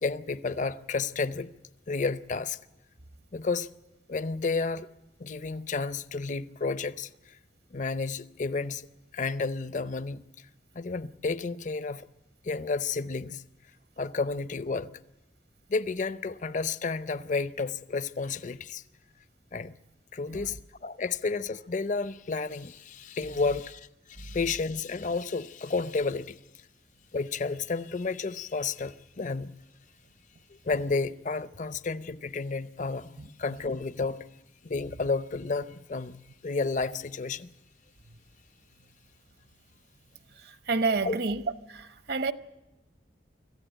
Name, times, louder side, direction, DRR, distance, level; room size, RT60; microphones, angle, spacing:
voice 1, 0.0-1.5 1.9-2.6 3.3-3.7 4.1-4.9 5.2-7.4 7.7-8.9 9.1-10.2 10.7-12.1 12.4-13.4 14.0-14.9 15.7-18.8 19.5-19.7 20.1-26.4 27.1-29.5 30.6-34.3 34.6-37.5 41.0-41.2, left 4 dB, 45° left, 0.7 m, -31 dB
voice 2, 40.4-41.4 41.7-42.3, right 4 dB, 65° right, 1.1 m, -30 dB
25.5 x 15.0 x 9.0 m
head